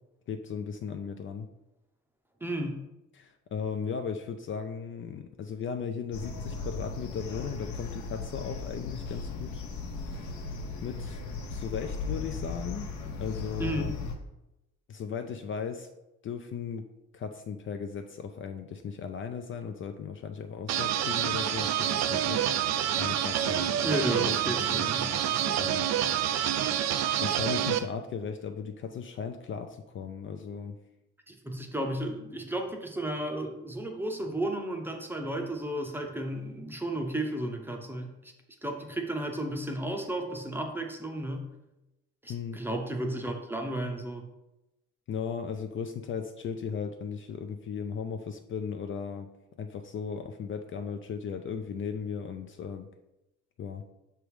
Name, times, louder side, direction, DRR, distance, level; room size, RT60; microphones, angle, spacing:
voice 1, 0.3-1.5 3.2-9.6 10.8-11.2 11.5-12.9 13.2-13.9 14.9-15.9 16.2-16.9 17.1-22.4 23.0-25.9 26.2-26.9 27.2-30.8 42.3-42.6 45.1-49.3 49.6-52.9 53.6-53.8, left 6 dB, 45° left, 6 dB, 0.4 m, -37 dB
voice 2, 2.4-2.8 13.6-14.0 23.8-25.4 31.3-38.1 38.6-41.5 42.2-44.3, right 1 dB, 5° right, 3 dB, 0.7 m, -33 dB
sound 1, 6.1-14.1, left 4 dB, 75° left, 1.0 m, -37 dB
sound 2, 20.7-27.8, right 10 dB, 65° right, 0.5 m, -27 dB
6.0 x 3.4 x 4.7 m, 0.93 s
cardioid pair, 140°, 30 cm